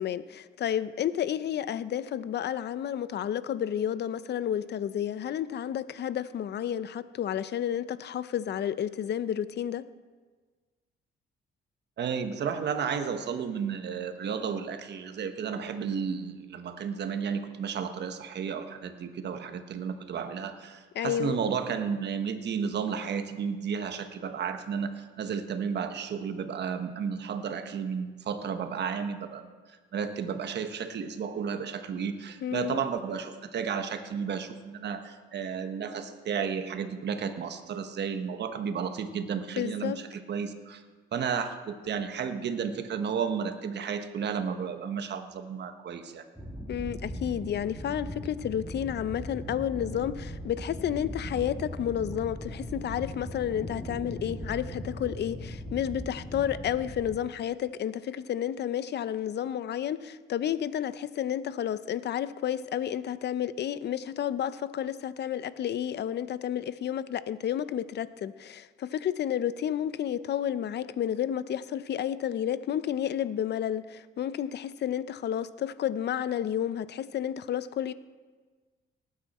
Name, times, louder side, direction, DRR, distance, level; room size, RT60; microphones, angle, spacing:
voice 1, 0.0-9.8 20.9-21.4 32.4-32.8 39.6-40.0 46.7-77.9, left 10 dB, 60° left, 0.6 m, -31 dB
voice 2, 12.0-40.8 41.1-46.2, right 6 dB, 60° right, 1.2 m, -33 dB
sound 1, 46.3-57.1, equal, 5° right, 2.6 m, -39 dB
19.0 x 9.5 x 4.3 m
cardioid pair, 90°, 20 cm